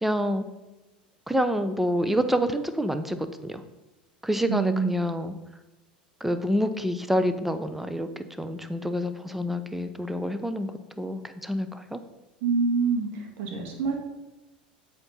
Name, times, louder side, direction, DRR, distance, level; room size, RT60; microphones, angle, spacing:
voice 1, 0.0-0.5 1.3-3.2 3.4-3.6 4.2-5.3 6.2-10.7 11.0-12.0, equal, 5° right, 9 dB, 0.6 m, -27 dB
voice 2, 4.5-4.9 12.4-14.0, right 4 dB, 50° right, 1 dB, 1.8 m, -26 dB
7.9 x 3.6 x 5.5 m, 1.1 s
figure-of-eight pair, 80°, 5 cm